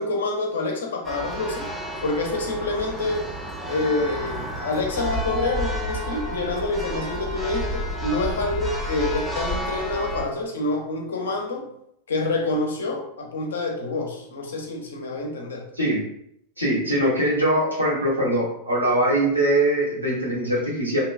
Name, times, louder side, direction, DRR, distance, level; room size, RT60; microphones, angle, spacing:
voice 1, 0.0-1.7 2.0-3.2 3.7-11.7 12.1-15.7, left 2 dB, 65° left, 2 dB, 0.6 m, -27 dB
Church bell, 1.0-10.2, equal, 5° right, 0.5 m, -30 dB
voice 2, 16.6-21.0, right 1 dB, 85° right, -5 dB, 1.0 m, -22 dB
2.8 x 2.2 x 2.4 m, 0.73 s
figure-of-eight pair, 90°, 0 cm